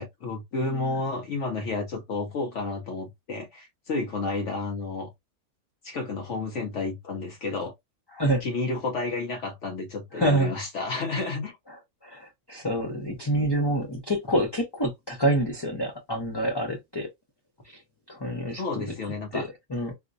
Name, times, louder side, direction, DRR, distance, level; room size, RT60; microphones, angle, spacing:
voice 1, 0.0-5.1 5.8-7.7 8.4-11.6 18.6-19.5, left 3 dB, 65° left, 0.9 m, -31 dB
voice 2, 10.1-10.5 12.0-17.1 18.1-18.8 19.3-19.9, right 1 dB, 25° left, 0.5 m, -27 dB
4.4 x 2.1 x 2.5 m
omnidirectional pair, 1.5 m